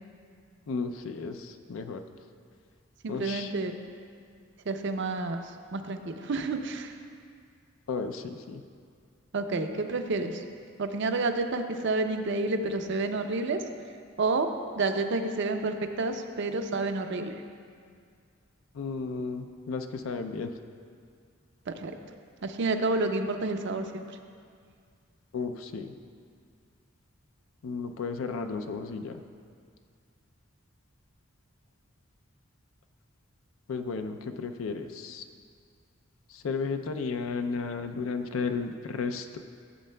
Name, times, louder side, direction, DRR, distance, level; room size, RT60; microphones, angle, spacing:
voice 1, 0.7-2.0 3.1-3.5 7.9-8.6 18.7-20.5 25.3-25.9 27.6-29.2 33.7-35.3 36.3-39.4, left 4 dB, 75° left, 7 dB, 0.4 m, -33 dB
voice 2, 3.0-3.7 4.7-5.4 5.7-6.9 9.3-10.4 10.8-13.6 14.2-14.5 14.8-17.3 21.7-21.9 22.4-24.0, right 3 dB, 60° right, 7 dB, 0.5 m, -29 dB
14.0 x 7.5 x 2.2 m, 2.2 s
head